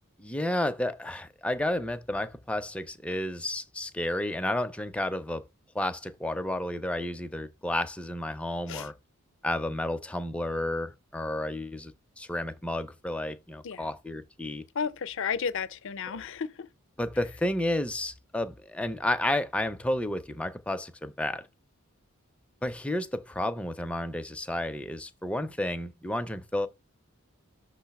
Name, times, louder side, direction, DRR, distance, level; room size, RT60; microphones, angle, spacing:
voice 1, 0.2-5.4 5.7-8.9 9.4-14.6 17.0-21.5 22.6-26.7, left 1 dB, 5° left, 0.4 m, -31 dB
voice 2, 14.7-16.7, left 6 dB, 60° left, 0.5 m, -33 dB
6.2 x 3.0 x 5.8 m
head